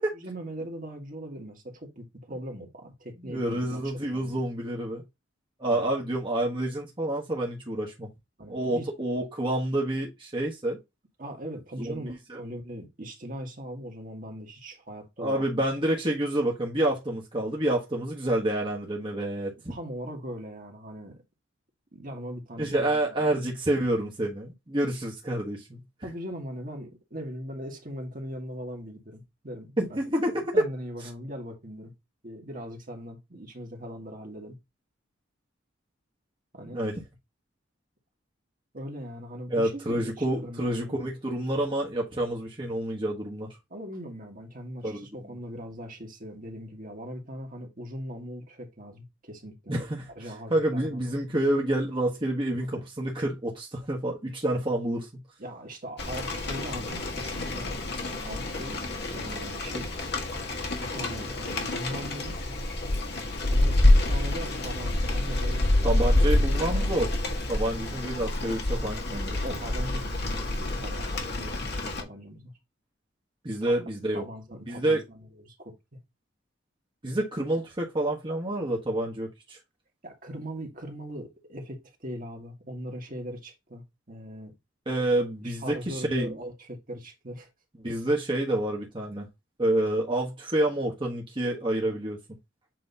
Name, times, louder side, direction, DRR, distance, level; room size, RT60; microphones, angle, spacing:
voice 1, 0.0-4.4 5.7-5.9 8.4-8.9 11.2-15.4 19.7-21.2 21.9-23.5 26.0-30.0 30.5-31.9 32.2-34.6 36.5-36.9 38.7-41.1 43.7-49.8 50.1-51.0 52.6-52.8 55.4-57.8 58.0-58.8 59.1-59.9 60.8-62.4 63.5-66.2 66.5-67.0 69.4-72.5 74.1-75.7 80.0-84.5 85.4-87.5, equal, 45° right, 1.8 m, -40 dB
voice 2, 3.2-5.0 5.6-8.1 8.5-10.8 11.8-12.4 15.2-19.7 22.6-25.8 29.8-30.6 36.7-37.0 39.5-43.5 44.8-45.1 49.7-50.1 50.5-55.1 65.8-67.1 67.5-69.4 73.4-74.2 74.7-75.0 77.0-79.6 84.9-86.3 87.8-89.3 89.6-92.2, right 1 dB, 25° right, 1.3 m, -28 dB
Rain, 56.0-72.0, left 1 dB, 55° left, 1.8 m, -27 dB
7.7 x 3.1 x 4.0 m
head